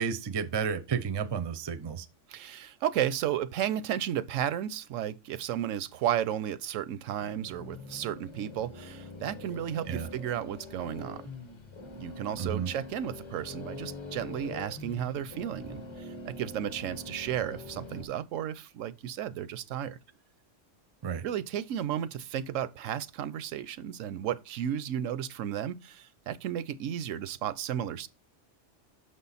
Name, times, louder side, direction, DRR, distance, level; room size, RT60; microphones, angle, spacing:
voice 1, 0.0-2.1 9.9-10.1 12.4-12.7 21.0-21.2, right 6 dB, 35° right, 0.4 m, -31 dB
voice 2, 2.3-11.2 11.9-20.0 21.2-28.1, right 10 dB, 85° right, 1.0 m, -33 dB
sound 1, 7.1-18.1, left 3 dB, 25° left, 0.8 m, -44 dB
6.3 x 5.6 x 4.0 m
omnidirectional pair, 1.3 m